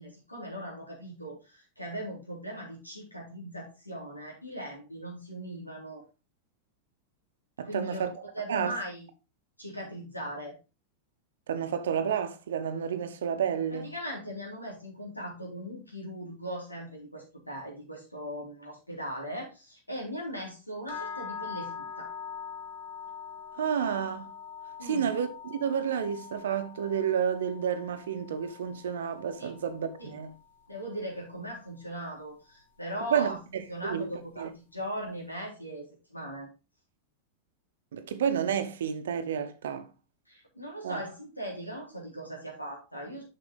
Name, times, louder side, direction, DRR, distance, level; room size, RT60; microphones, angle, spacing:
voice 1, 0.0-6.0 7.6-8.1 8.3-9.1 9.6-10.5 13.7-22.1 24.8-25.1 29.4-29.5 30.0-30.1 30.7-33.4 33.7-36.5 40.3-43.2, equal, 85° left, 3.0 m, -39 dB
voice 2, 7.6-8.1 8.5-8.8 11.5-13.9 23.6-24.3 24.8-30.3 33.1-34.1 34.4-34.5 37.9-39.9 40.8-41.0, right 8 dB, 60° right, 1.0 m, -30 dB
sound 1, 20.9-31.0, left 7 dB, 65° left, 1.6 m, -43 dB
7.1 x 5.9 x 3.7 m
figure-of-eight pair, 90°, 0 cm